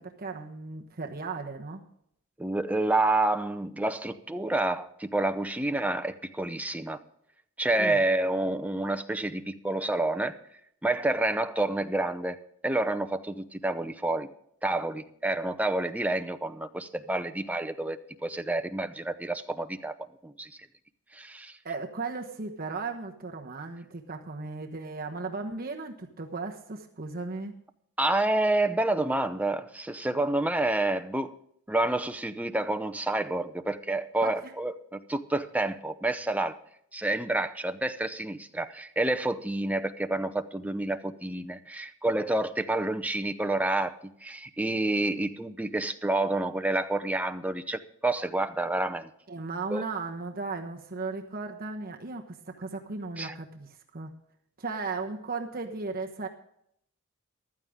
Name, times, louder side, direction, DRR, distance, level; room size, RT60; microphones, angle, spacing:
voice 1, 0.0-1.8 7.8-8.0 21.6-27.6 34.2-34.4 49.3-54.1 54.6-56.3, right 3 dB, 40° right, 3 dB, 1.2 m, -36 dB
voice 2, 2.4-7.0 7.6-10.4 10.8-12.4 12.6-14.3 14.6-19.9 20.2-20.6 21.1-21.6 28.0-31.3 31.7-36.6 36.9-49.1 49.7-49.9 53.2-53.3, right 2 dB, 5° right, 9 dB, 0.7 m, -29 dB
15.0 x 12.5 x 3.7 m, 0.71 s
head